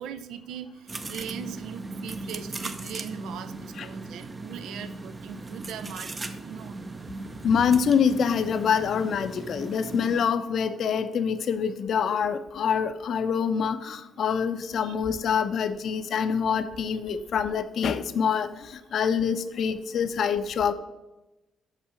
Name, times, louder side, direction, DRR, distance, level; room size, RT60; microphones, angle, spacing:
voice 1, 0.0-7.3 14.8-14.9, right 8 dB, 80° right, 11 dB, 0.5 m, -40 dB
sound 1, 0.9-10.2, right 2 dB, 25° right, 0.6 m, -38 dB
voice 2, 7.4-20.7, left 7 dB, 60° left, 10 dB, 0.6 m, -25 dB
6.1 x 5.7 x 5.7 m, 1.0 s
cardioid pair, 90°, 0 cm